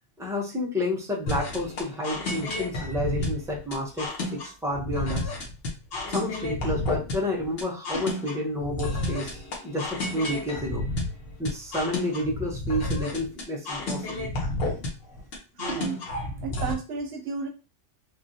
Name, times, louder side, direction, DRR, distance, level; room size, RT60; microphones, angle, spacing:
voice 1, 0.2-5.3 6.1-10.8 11.4-14.3 14.6-14.8, left 1 dB, 5° right, -1 dB, 0.5 m, -30 dB
sound 1, 1.3-16.7, left 2 dB, 55° left, 1.0 m, -31 dB
voice 2, 15.6-16.0 16.4-17.5, right 5 dB, 65° right, 5 dB, 0.8 m, -32 dB
3.1 x 2.5 x 2.6 m, 0.33 s
omnidirectional pair, 1.3 m